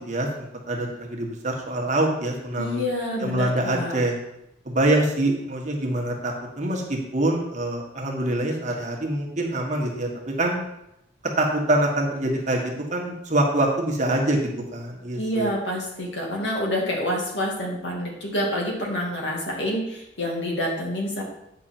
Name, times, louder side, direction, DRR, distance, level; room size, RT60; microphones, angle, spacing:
voice 1, 0.1-2.8 3.2-4.1 4.6-10.6 11.4-14.4 14.7-15.5, right 1 dB, 40° right, 0 dB, 1.5 m, -25 dB
voice 2, 2.6-4.0 15.1-21.2, left 1 dB, 65° left, -2 dB, 2.5 m, -27 dB
9.1 x 6.2 x 4.4 m, 0.84 s
head